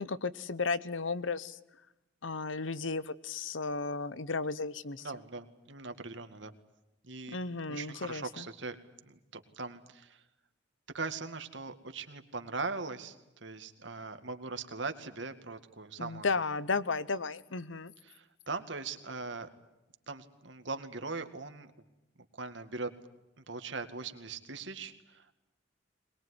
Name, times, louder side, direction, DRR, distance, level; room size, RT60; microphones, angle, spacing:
voice 1, 0.0-1.6 2.2-5.1 7.3-8.4 16.0-17.9, left 4 dB, 85° left, 16 dB, 1.0 m, -34 dB
voice 2, 5.0-6.5 7.0-7.4 7.7-8.8 9.1-10.2 10.9-13.2 13.4-16.3 18.0-19.5 20.1-21.7 22.4-22.9 23.4-25.3, right 3 dB, 70° right, 8 dB, 2.1 m, -40 dB
22.5 x 21.0 x 9.8 m, 0.95 s
head